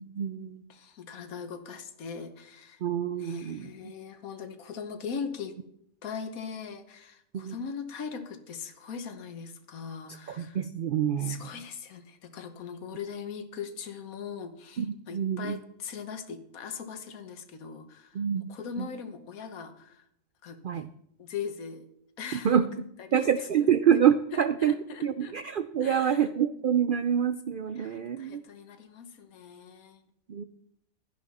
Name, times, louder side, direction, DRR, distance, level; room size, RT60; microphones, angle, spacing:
voice 1, 0.0-0.6 2.8-3.7 7.3-7.5 10.3-11.4 14.8-15.6 18.2-18.4 20.6-20.9 22.4-22.6 23.1-24.7 25.0-28.4 30.3-30.4, right 9 dB, 80° right, 12 dB, 0.4 m, -26 dB
voice 2, 0.7-2.8 3.2-5.5 6.0-10.6 11.2-18.2 18.5-20.0 20.4-20.6 21.2-21.9 22.2-22.6 23.0-23.7 24.3-25.4 25.8-26.3 27.7-30.0, left 6 dB, 75° left, 8 dB, 1.5 m, -40 dB
11.5 x 10.0 x 4.2 m, 0.74 s
omnidirectional pair, 1.5 m